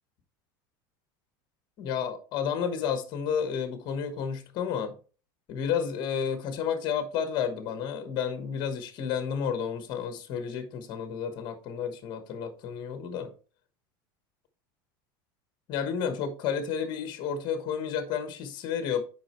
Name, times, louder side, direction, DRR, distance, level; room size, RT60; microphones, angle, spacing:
voice 1, 1.8-5.0 5.5-13.3 15.7-19.0, left 7 dB, 40° left, 1.2 m, -31 dB
7.4 x 5.2 x 3.1 m
supercardioid pair, 140°, 11 cm